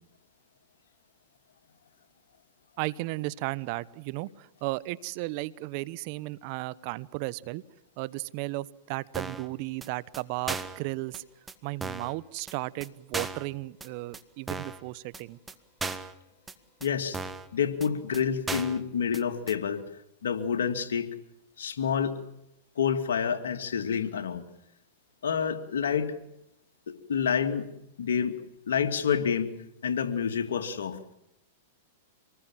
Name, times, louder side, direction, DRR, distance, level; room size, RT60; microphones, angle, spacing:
voice 1, 2.8-7.6 8.0-11.2 11.6-15.4, right 20 dB, 50° right, 20 dB, 0.9 m, -35 dB
sound 1, 9.1-9.5 9.8-9.9 10.1-10.2 10.5-10.8 11.1-11.2 11.5-11.6 11.8-12.1 12.5-12.6 12.8-12.9 13.1-13.5 13.8-13.9 14.1-14.2 14.5-14.8 15.1-15.2 15.5-15.6 15.8-16.1 16.5-16.6 16.8-16.9 17.1-17.5 17.8-17.9 18.1-18.2 18.5-18.8 19.1-19.2 19.5-19.6, right 3 dB, 10° right, 1.6 m, -35 dB
voice 2, 16.8-17.2 17.5-19.8 20.2-21.1 21.6-22.2 22.8-24.4 25.2-26.1 26.9-27.7 28.0-28.4 28.7-29.5 29.8-31.0, left 7 dB, 80° left, 7 dB, 2.5 m, -28 dB
26.0 x 20.0 x 7.4 m, 0.83 s
hypercardioid pair, 120°, 0 cm